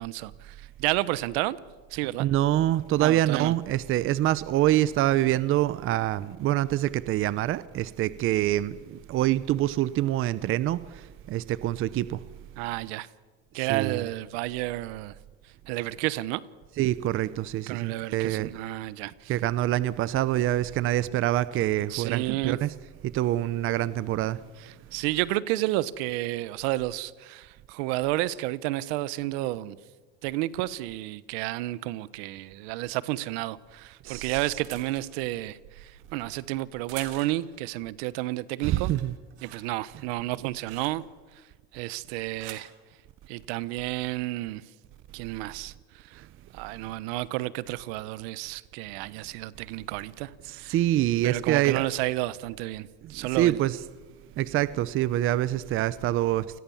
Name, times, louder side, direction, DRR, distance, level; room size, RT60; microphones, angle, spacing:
voice 1, 0.0-1.6 1.9-2.3 3.0-3.5 12.6-13.1 13.5-15.1 15.7-16.4 17.7-19.3 21.9-22.6 24.6-29.8 30.2-38.9 39.4-41.0 41.7-42.7 43.3-44.7 45.1-46.2 46.5-50.7 51.2-53.6, right 17 dB, 70° right, 1.1 m, -31 dB
voice 2, 2.2-10.8 11.3-12.2 13.6-14.0 16.8-18.5 19.3-22.7 23.0-24.4 34.0-34.3 38.6-39.1 50.5-51.9 53.3-53.8 54.4-56.6, right 14 dB, 40° right, 0.8 m, -25 dB
sound 1, 33.7-37.7 38.1-38.4 38.7-41.3 42.1-42.7 43.6-44.0, right 12 dB, 90° right, 3.8 m, -47 dB
29.0 x 20.5 x 7.2 m
supercardioid pair, 130°, 32 cm